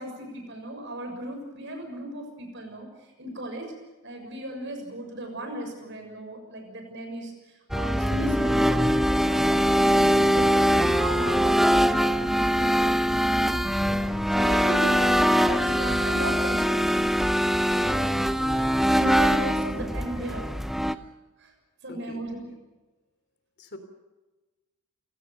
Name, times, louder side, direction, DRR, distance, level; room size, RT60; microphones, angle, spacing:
voice 1, 0.0-2.9 3.2-3.7 4.0-8.9 9.2-14.0 14.4-17.1 17.7-18.2 18.9-20.5 20.8-21.0 21.4-21.5 21.8-22.5, right 1 dB, 55° right, 4 dB, 6.8 m, -36 dB
sound 1, 7.7-21.0, equal, ahead, 0.7 m, -22 dB
voice 2, 9.9-10.4 18.1-19.3 21.9-22.2 23.6-23.8, left 2 dB, 50° left, 9 dB, 3.5 m, -43 dB
28.5 x 17.0 x 6.9 m, 1.2 s
head